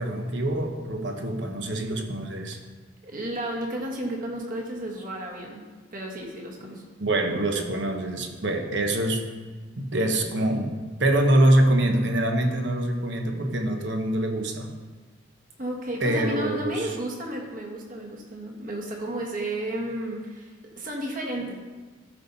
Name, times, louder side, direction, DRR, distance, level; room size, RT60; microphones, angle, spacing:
voice 1, 0.0-2.6 7.0-9.2 9.8-14.7 16.0-16.9, right 1 dB, 70° right, 4 dB, 1.1 m, -24 dB
voice 2, 3.0-5.6 5.9-6.8 15.6-21.6, right 1 dB, 45° right, 0 dB, 1.7 m, -32 dB
13.5 x 5.4 x 4.1 m, 1.3 s
head